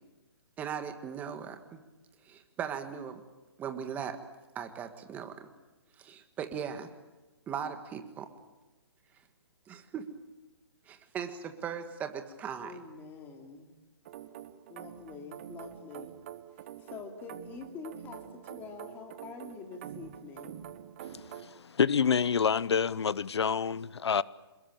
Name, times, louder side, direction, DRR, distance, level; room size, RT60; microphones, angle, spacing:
voice 1, 0.6-1.8 2.2-3.2 3.6-4.2 4.5-5.5 6.0-6.9 7.5-8.3 9.7-10.1 10.9-12.8, right 8 dB, 10° right, 1.6 m, -38 dB
voice 2, 12.6-13.7 14.7-16.1 16.8-20.6, left 4 dB, 15° left, 2.9 m, -46 dB
sound 1, 14.0-21.5, right 11 dB, 30° right, 1.2 m, -46 dB
voice 3, 21.0-24.2, left 6 dB, 80° left, 0.8 m, -28 dB
27.0 x 21.5 x 8.9 m
hypercardioid pair, 165°, 14 cm